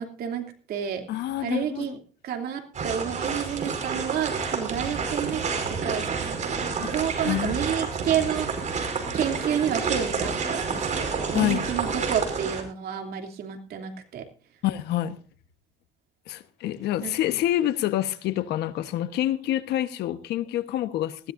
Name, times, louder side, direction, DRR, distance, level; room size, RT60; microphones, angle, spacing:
voice 1, 0.0-1.0 1.4-2.0 2.2-5.4 5.8-8.8 9.1-14.2 17.0-17.1, right 9 dB, 65° right, 4 dB, 3.0 m, -30 dB
voice 2, 1.1-1.9 6.8-6.9 7.3-7.7 11.3-11.6 14.6-15.2 16.3-21.3, left 13 dB, 80° left, 11 dB, 1.3 m, -27 dB
sound 1, 2.7-12.6, right 5 dB, 45° right, 5.0 m, -29 dB
19.5 x 17.0 x 2.7 m, 0.38 s
cardioid pair, 110°, 17 cm